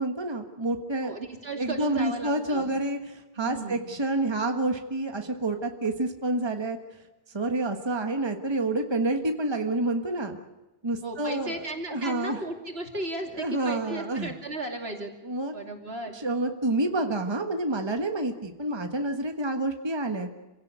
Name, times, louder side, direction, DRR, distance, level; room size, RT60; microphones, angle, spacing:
voice 1, 0.0-1.1 1.6-6.8 7.3-10.4 10.8-11.6 11.9-12.4 13.3-14.3 15.2-15.5 16.1-20.3, right 2 dB, 25° right, 5 dB, 1.5 m, -28 dB
voice 2, 1.0-2.7 3.4-3.8 11.0-15.1 15.5-16.1, right 2 dB, 80° right, 3 dB, 3.3 m, -35 dB
27.5 x 17.0 x 8.2 m, 1.1 s
omnidirectional pair, 1.0 m